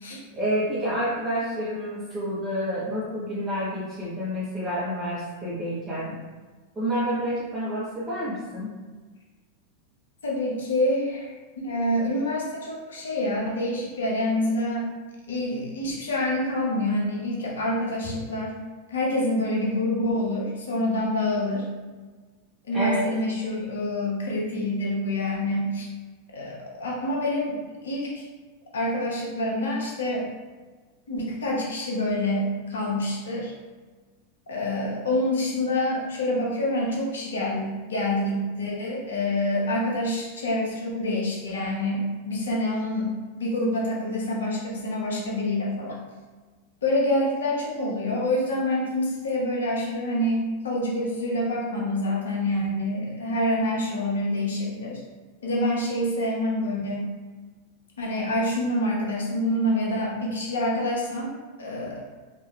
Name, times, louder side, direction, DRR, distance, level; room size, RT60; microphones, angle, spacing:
voice 1, 0.3-6.1 6.7-8.7 22.7-23.0, equal, 15° right, -11 dB, 1.3 m, -29 dB
voice 2, 10.2-14.9 15.3-18.6 18.9-21.7 22.7-25.9 26.3-28.3 28.7-30.3 31.1-33.5 34.5-43.1 43.4-45.9 46.8-55.0 55.4-57.1 58.0-62.0, left 1 dB, 65° left, -3 dB, 1.0 m, -27 dB
4.9 x 3.0 x 2.3 m, 1.4 s
figure-of-eight pair, 90°, 0 cm